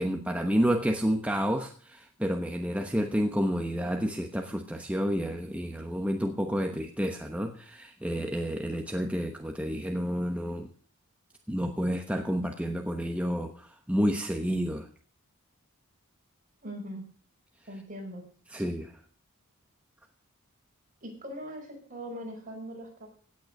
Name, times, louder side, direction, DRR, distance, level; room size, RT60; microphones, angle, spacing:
voice 1, 0.0-10.7 11.5-14.9 18.5-18.9, equal, 5° right, 4 dB, 1.0 m, -30 dB
voice 2, 16.6-17.0 17.7-18.2 21.0-23.1, equal, 35° right, 1 dB, 5.5 m, -40 dB
17.0 x 9.3 x 6.5 m, 0.43 s
head